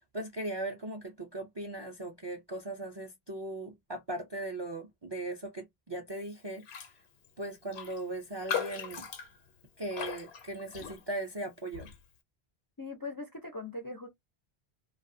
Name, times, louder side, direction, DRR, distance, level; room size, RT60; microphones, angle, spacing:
voice 1, 0.1-6.7 7.4-9.1 9.8-11.9, right 2 dB, 45° right, 0.3 m, -38 dB
Raindrop, 6.6-7.0 7.2-7.3 7.7-11.3 11.7-12.0, left 7 dB, 85° left, 1.0 m, -39 dB
voice 2, 12.8-14.1, left 3 dB, 35° left, 0.3 m, -40 dB
2.4 x 2.3 x 2.5 m
omnidirectional pair, 1.1 m